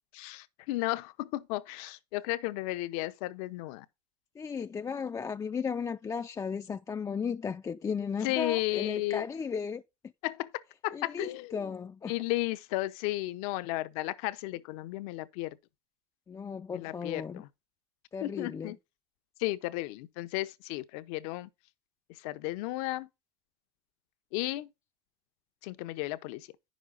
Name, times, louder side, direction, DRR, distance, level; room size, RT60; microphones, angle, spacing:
voice 1, 0.1-3.9 8.2-9.3 10.2-11.7 12.1-15.6 16.7-17.5 18.2-18.8 19.4-21.5 22.2-23.1 24.3-24.7 25.6-26.5, left 18 dB, 65° left, 0.8 m, -34 dB
voice 2, 4.4-9.8 10.9-12.1 16.3-17.4 18.1-18.7, left 6 dB, 15° left, 0.4 m, -35 dB
9.5 x 6.3 x 3.9 m
supercardioid pair, 115°, 20 cm